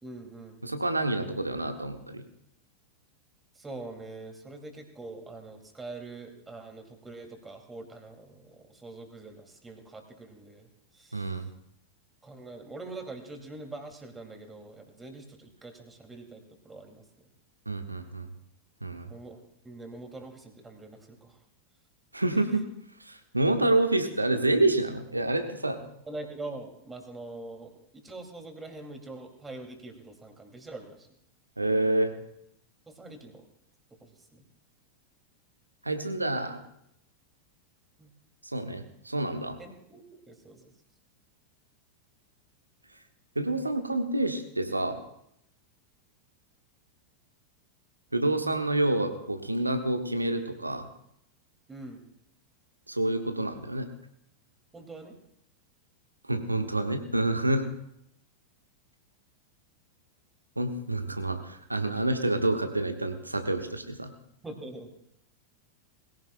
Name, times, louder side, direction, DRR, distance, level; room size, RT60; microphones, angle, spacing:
voice 1, 0.0-0.6 3.5-11.4 12.2-17.0 19.1-21.4 26.1-31.1 32.9-33.5 34.0-34.4 38.0-38.1 39.6-40.7 51.7-52.0 54.7-55.2 64.4-64.9, right 2 dB, 10° right, 4 dB, 2.5 m, -44 dB
voice 2, 0.6-2.2 11.1-11.5 17.7-18.3 18.8-19.1 22.1-22.6 23.0-25.8 31.6-32.1 35.8-36.6 38.5-39.6 43.3-45.0 48.1-50.9 52.9-53.9 56.3-57.6 60.6-64.1, right 2 dB, 85° right, 7 dB, 1.2 m, -28 dB
21.5 x 16.0 x 2.2 m, 0.76 s
figure-of-eight pair, 90°, 0 cm